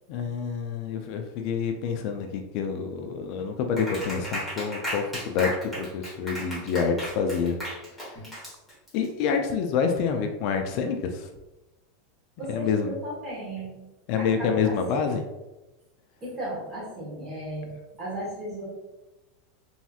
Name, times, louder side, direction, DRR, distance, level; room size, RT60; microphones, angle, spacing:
voice 1, 0.1-5.5 5.8-7.6 8.0-8.2 8.9-11.3 12.5-13.0 14.1-15.2, left 6 dB, 50° left, 5 dB, 0.3 m, -27 dB
Clapping, 3.8-9.1, equal, 5° right, 1.2 m, -35 dB
voice 2, 12.4-13.7 14.2-14.8 16.2-17.7 18.0-18.6, right 1 dB, 25° right, -5 dB, 1.2 m, -35 dB
3.1 x 2.8 x 2.3 m, 1.0 s
supercardioid pair, 150°, 0 cm